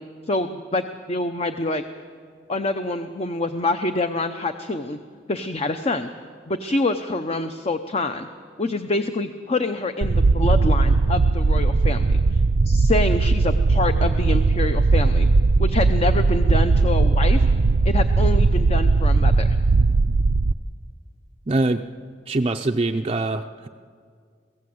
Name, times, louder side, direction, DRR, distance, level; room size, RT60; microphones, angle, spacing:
voice 1, 0.3-0.8 1.1-1.8 2.5-5.0 5.3-6.1 6.5-8.3 8.6-12.1 12.7-15.3 15.6-17.4 17.8-19.6, left 2 dB, 35° left, 8 dB, 0.7 m, -26 dB
sound 1, 10.0-20.5, right 3 dB, 80° right, 0.5 m, -18 dB
voice 2, 21.5-21.8 22.3-23.7, right 2 dB, 30° right, 4 dB, 0.5 m, -23 dB
24.5 x 16.0 x 7.9 m, 2.1 s
head